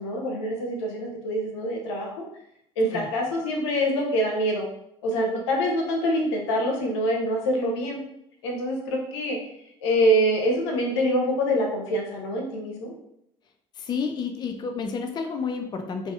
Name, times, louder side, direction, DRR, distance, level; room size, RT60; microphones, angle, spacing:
voice 1, 0.0-2.3 2.8-4.7 5.0-8.0 8.4-9.4 9.8-12.9, equal, 85° left, 1 dB, 0.6 m, -25 dB
voice 2, 13.8-16.1, left 5 dB, 30° left, 4 dB, 0.4 m, -30 dB
2.6 x 2.4 x 2.4 m, 0.77 s
hypercardioid pair, 75°, 14 cm